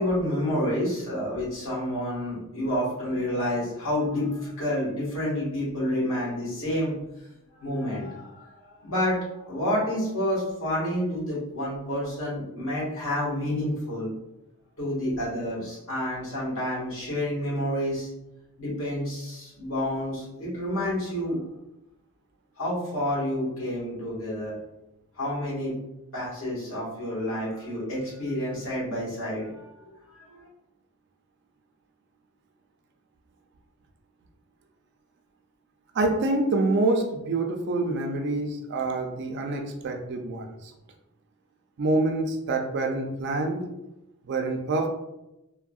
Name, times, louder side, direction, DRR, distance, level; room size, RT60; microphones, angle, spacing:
voice 1, 0.0-7.0 7.5-14.1 14.8-18.1 18.6-21.4 22.6-24.6 25.2-25.8 26.1-30.4, left 1 dB, 65° left, -7 dB, 1.4 m, -29 dB
voice 2, 35.9-40.7 41.8-43.6 44.3-44.9, right 2 dB, 55° right, 3 dB, 0.4 m, -26 dB
3.5 x 2.1 x 2.3 m, 0.93 s
head